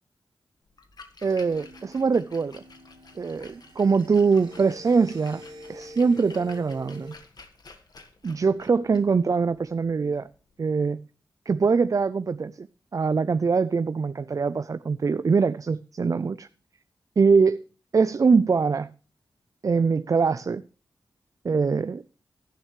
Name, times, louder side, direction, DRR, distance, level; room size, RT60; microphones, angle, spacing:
Splash splatter, 0.7-10.6, left 4 dB, 65° left, 1.6 m, -51 dB
voice 1, 1.2-2.6 3.2-5.4 5.7-7.1 8.2-10.3 10.6-11.0 11.5-12.7 12.9-16.5 17.2-17.6 17.9-18.9 19.6-20.6 21.4-22.0, right 5 dB, 50° right, 0.5 m, -23 dB
sound 1, 1.5-7.1, left 1 dB, 80° right, 1.8 m, -46 dB
16.0 x 11.0 x 3.1 m
cardioid pair, 65°, 7 cm